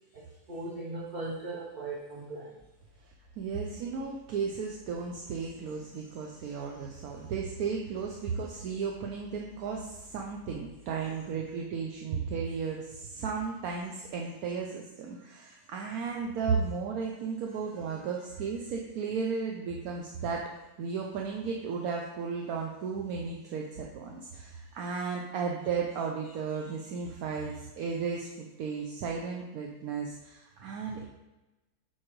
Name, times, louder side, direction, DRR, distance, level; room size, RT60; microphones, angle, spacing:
voice 1, 0.1-2.6 5.9-6.0 6.4-6.6 30.7-31.0, right 2 dB, 40° right, -4 dB, 0.8 m, -39 dB
sound 1, 2.6-13.3, left 10 dB, 10° left, 0.7 m, -61 dB
voice 2, 3.4-20.4 20.8-31.1, right 5 dB, 75° right, 0 dB, 1.1 m, -34 dB
8.5 x 4.6 x 3.1 m, 1.0 s
omnidirectional pair, 1.6 m